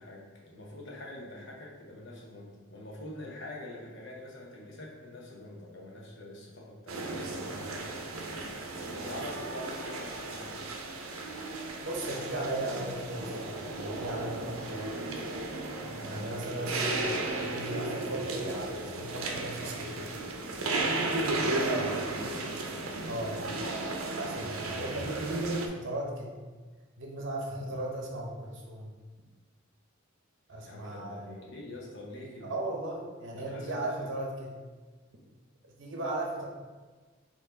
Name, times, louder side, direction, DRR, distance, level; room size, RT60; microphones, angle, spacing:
voice 1, 0.0-7.0 7.5-7.9 8.9-10.6 15.7-16.4 17.2-17.5 22.0-23.5 30.6-32.5 33.4-34.1, left 1 dB, 60° left, -2 dB, 0.9 m, -45 dB
sound 1, 6.9-25.7, right 2 dB, 90° right, 0.6 m, -34 dB
voice 2, 11.8-14.9 16.0-20.1 23.1-23.5 24.1-25.5 25.8-26.4 27.0-28.9 30.5-31.7 32.4-34.5 35.6-36.5, right 1 dB, 60° right, -1 dB, 0.9 m, -37 dB
4.4 x 2.9 x 3.9 m, 1.3 s
head